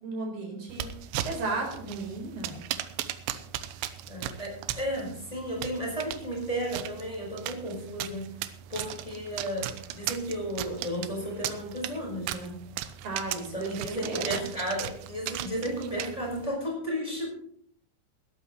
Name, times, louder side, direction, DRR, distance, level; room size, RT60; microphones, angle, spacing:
voice 1, 0.0-0.9 1.2-2.6 13.0-14.2, right 3 dB, 50° right, 1 dB, 5.7 m, -34 dB
sound 1, 0.7-16.5, right 12 dB, 80° right, 2.8 m, -38 dB
voice 2, 4.1-12.6 13.3-17.3, equal, 5° left, -2 dB, 4.4 m, -34 dB
20.0 x 12.5 x 3.1 m, 0.66 s
omnidirectional pair, 5.2 m